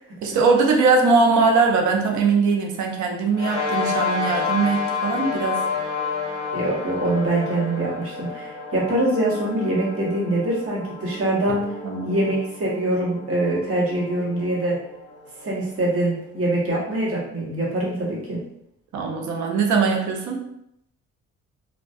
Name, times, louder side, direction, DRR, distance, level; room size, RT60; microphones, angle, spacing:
voice 1, 0.2-5.6 11.8-12.2 18.9-20.4, right 4 dB, 70° right, 2 dB, 0.6 m, -21 dB
sound 1, 3.3-16.1, left 5 dB, 45° left, 0.8 m, -30 dB
voice 2, 6.5-11.7 12.0-14.8 15.4-18.4, right 1 dB, 50° right, -5 dB, 1.1 m, -24 dB
2.5 x 2.3 x 2.3 m, 0.77 s
cardioid pair, 90°, 30 cm